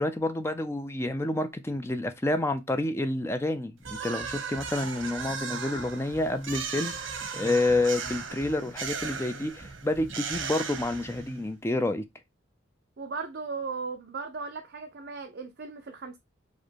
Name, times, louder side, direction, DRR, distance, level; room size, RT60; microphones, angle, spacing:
voice 1, 0.0-12.0, left 2 dB, 15° left, 0.4 m, -29 dB
sound 1, 3.8-11.4, right 1 dB, 25° right, 1.6 m, -46 dB
sound 2, 3.8-11.5, right 6 dB, 75° right, 1.0 m, -37 dB
voice 2, 13.0-16.2, right 4 dB, 55° right, 0.5 m, -37 dB
4.8 x 2.1 x 4.4 m
head